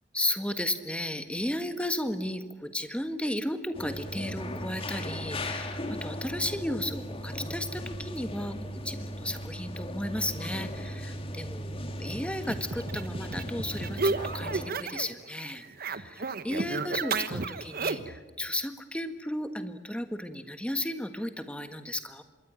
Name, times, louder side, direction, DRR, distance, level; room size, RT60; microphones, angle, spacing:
voice 1, 0.1-22.2, left 1 dB, 5° left, 8 dB, 1.6 m, -34 dB
sound 1, 3.7-14.7, equal, 30° left, 2.3 m, -37 dB
sound 2, 12.4-15.1 15.4-18.2, right 3 dB, 55° right, 1.2 m, -32 dB
26.0 x 22.0 x 8.9 m, 1.2 s
head